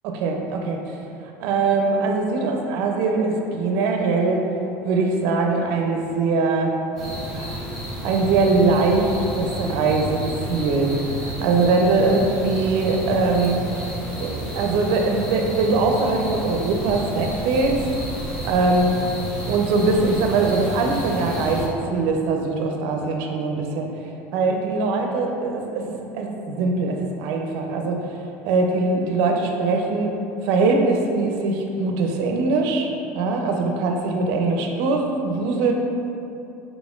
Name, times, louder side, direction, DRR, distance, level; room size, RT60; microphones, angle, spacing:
voice 1, 0.0-0.8 1.4-4.4 4.8-6.7 7.3-7.6 8.0-11.0 11.2-13.6 14.2-17.8 18.4-18.9 19.5-23.9 24.3-28.0 28.4-30.1 30.4-32.9 33.1-35.7, right 3 dB, 70° right, 2 dB, 0.5 m, -22 dB
sound 1, 7.0-21.7, right 1 dB, 5° left, 1.3 m, -31 dB
4.1 x 3.2 x 2.4 m, 2.8 s
supercardioid pair, 105°, 7 cm